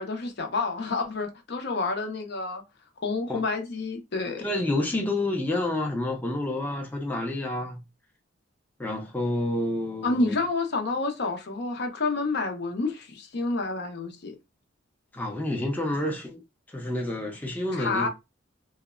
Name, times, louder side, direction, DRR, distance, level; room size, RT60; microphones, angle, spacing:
voice 1, 0.0-2.6 3.0-4.5 10.0-14.3 17.7-18.1, left 3 dB, 60° left, 0.6 m, -29 dB
voice 2, 4.4-7.8 8.8-10.4 15.1-16.4 16.7-18.1, left 1 dB, 10° left, 0.5 m, -29 dB
2.8 x 2.1 x 2.3 m
head